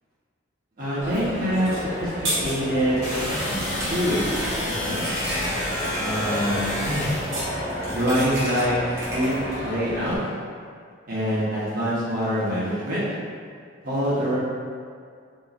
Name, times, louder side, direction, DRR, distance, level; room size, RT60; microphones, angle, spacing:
voice 1, 0.8-1.7 2.0-2.1 2.4-3.0 3.9-4.4 4.7-5.5 5.9-7.1 7.9-8.7 9.1-9.3 9.6-10.2 11.1-13.0 13.8-14.4, equal, 45° right, -9 dB, 1.1 m, -25 dB
Coin (dropping), 1.0-10.2, equal, 15° right, 0.9 m, -31 dB
sound 1, 1.6-3.1 7.0-8.5, right 1 dB, 75° right, 1.2 m, -32 dB
sound 2, 3.0-7.4, left 1 dB, 35° left, 0.6 m, -29 dB
3.4 x 3.0 x 2.6 m, 2.1 s
head